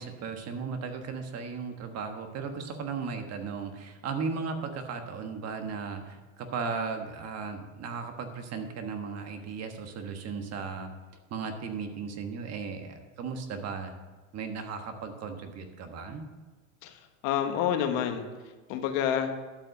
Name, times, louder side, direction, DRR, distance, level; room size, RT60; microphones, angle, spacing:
voice 1, 0.0-10.9 11.3-13.9 14.3-16.3, right 5 dB, 35° right, 6 dB, 1.4 m, -36 dB
voice 2, 16.8-18.3 18.7-19.3, left 9 dB, 55° left, 6 dB, 1.4 m, -28 dB
12.0 x 5.6 x 6.6 m, 1.3 s
supercardioid pair, 120°, 41 cm